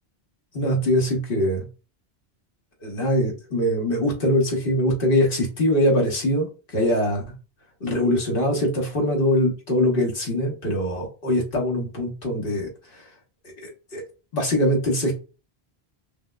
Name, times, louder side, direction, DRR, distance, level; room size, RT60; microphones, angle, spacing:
voice 1, 0.5-1.6 2.8-7.3 7.8-13.1 13.4-14.0 14.3-15.1, equal, 60° left, 0 dB, 1.3 m, -23 dB
5.2 x 2.0 x 2.3 m, 0.33 s
omnidirectional pair, 1.0 m